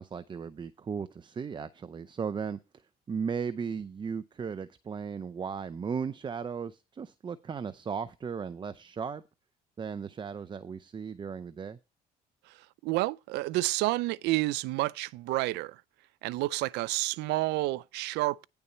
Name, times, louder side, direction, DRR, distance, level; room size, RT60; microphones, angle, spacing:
voice 1, 0.0-2.6 3.1-9.2 9.8-11.8, right 6 dB, 25° right, 0.6 m, -36 dB
voice 2, 12.8-15.8 16.2-18.4, right 19 dB, 85° right, 0.5 m, -29 dB
10.0 x 6.9 x 4.3 m
cardioid pair, 110°, 17 cm